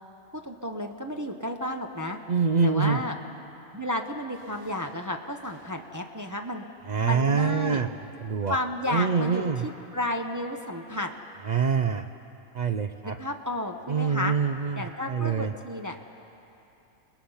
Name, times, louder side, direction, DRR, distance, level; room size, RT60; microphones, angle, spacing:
voice 1, 0.3-2.2 2.6-3.2 3.7-6.6 7.0-7.8 8.4-11.1 13.0-14.3 14.8-16.0, left 1 dB, 15° right, 3 dB, 0.7 m, -32 dB
voice 2, 2.3-3.0 6.9-7.9 8.2-8.6 8.9-9.7 11.5-12.0 12.5-13.2 13.9-15.5, right 6 dB, 65° right, 8 dB, 0.4 m, -25 dB
sound 1, 4.3-6.1, equal, 35° right, 6.3 m, -59 dB
29.5 x 20.0 x 5.6 m, 2.9 s
omnidirectional pair, 1.4 m